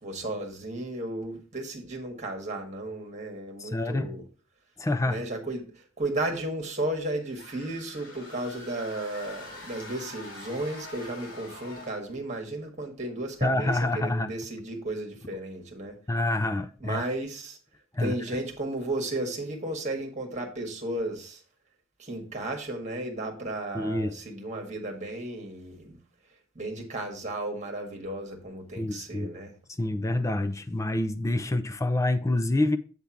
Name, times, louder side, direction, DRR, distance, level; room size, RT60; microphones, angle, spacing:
voice 1, 0.0-4.2 5.1-16.0 16.8-17.6 18.0-21.4 22.0-26.0 26.6-29.5, right 2 dB, 35° right, 1.7 m, -34 dB
voice 2, 3.6-4.2 4.8-5.2 13.4-14.3 16.1-17.0 17.9-18.2 23.7-24.1 28.8-29.4 29.8-32.8, left 2 dB, 15° left, 0.4 m, -27 dB
sound 1, 7.2-12.1, left 2 dB, 85° left, 2.7 m, -45 dB
8.0 x 3.5 x 5.8 m
head